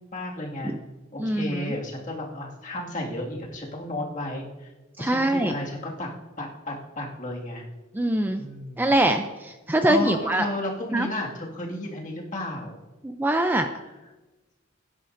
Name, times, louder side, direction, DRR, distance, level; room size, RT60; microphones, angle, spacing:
voice 1, 0.1-0.7 1.1-4.7 5.0-6.1 6.4-7.6 8.4-8.9 9.9-12.8, left 1 dB, 40° left, -2 dB, 2.0 m, -33 dB
voice 2, 1.2-1.7 5.0-5.5 7.9-8.4 8.8-10.5 10.9-11.1 13.0-13.7, right 1 dB, 10° right, 6 dB, 0.4 m, -23 dB
17.0 x 10.0 x 2.6 m, 1.1 s
head